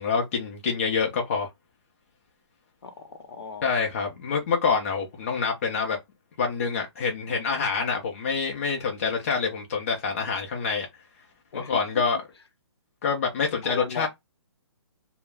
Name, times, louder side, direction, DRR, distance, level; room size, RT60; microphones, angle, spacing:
voice 1, 0.0-1.5 3.6-6.0 6.4-10.9 11.5-12.2 13.0-14.1, left 5 dB, 30° left, 0.5 m, -26 dB
voice 2, 2.8-3.6 11.5-11.8 13.6-14.1, left 5 dB, 60° left, 0.7 m, -36 dB
2.3 x 2.0 x 3.3 m
hypercardioid pair, 170°, 15 cm